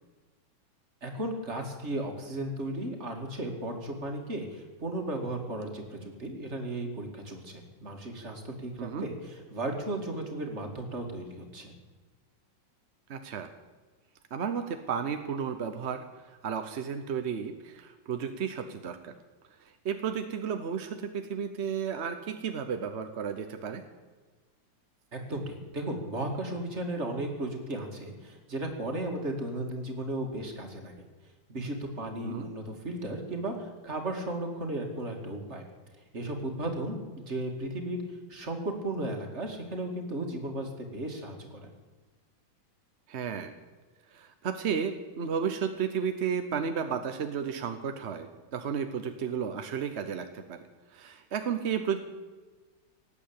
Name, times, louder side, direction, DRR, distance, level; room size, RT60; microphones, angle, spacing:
voice 1, 1.0-11.7 25.1-31.1 31.5-35.6 36.1-38.0 38.3-41.7, right 1 dB, 35° right, 3 dB, 2.5 m, -35 dB
voice 2, 13.1-13.5 14.3-19.1 19.8-23.8 32.2-32.5 43.1-43.5 44.1-50.6 50.9-52.0, right 7 dB, 50° right, 8 dB, 0.8 m, -33 dB
18.0 x 8.6 x 8.7 m, 1.3 s
omnidirectional pair, 2.1 m